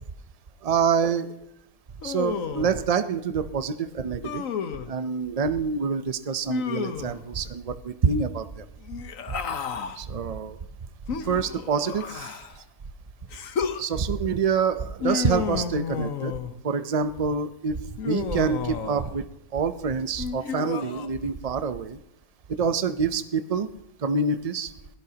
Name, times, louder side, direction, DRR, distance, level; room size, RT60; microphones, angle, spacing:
voice 1, 0.6-1.3 2.0-4.4 4.9-8.6 10.0-10.6 11.2-12.3 13.8-16.3 16.6-19.3 19.5-22.0 22.6-23.7 24.0-24.7, right 5 dB, 50° right, 12 dB, 0.4 m, -26 dB
Human voice, 2.0-2.8 4.2-4.9 6.5-7.3 8.8-10.0 11.1-12.6 13.3-13.8 15.0-16.6 18.0-19.2 20.2-21.1, left 7 dB, 60° left, 1.3 m, -31 dB
26.5 x 17.0 x 2.9 m, 0.86 s
omnidirectional pair, 1.7 m